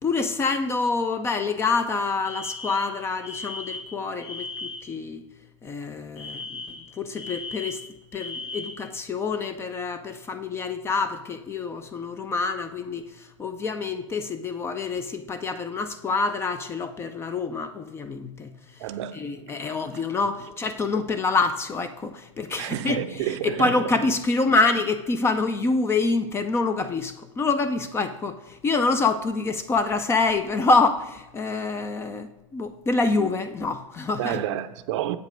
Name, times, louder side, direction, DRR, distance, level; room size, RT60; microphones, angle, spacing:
voice 1, 0.0-5.2 5.6-7.8 8.1-18.6 19.1-34.4, left 3 dB, 15° left, 0.4 m, -26 dB
Alarm, 2.2-5.0 6.2-8.9, left 3 dB, 35° left, 1.7 m, -37 dB
voice 2, 18.8-19.8 22.6-23.9 34.2-35.2, right 12 dB, 55° right, 0.5 m, -30 dB
8.0 x 5.3 x 5.1 m
hypercardioid pair, 135°, 17 cm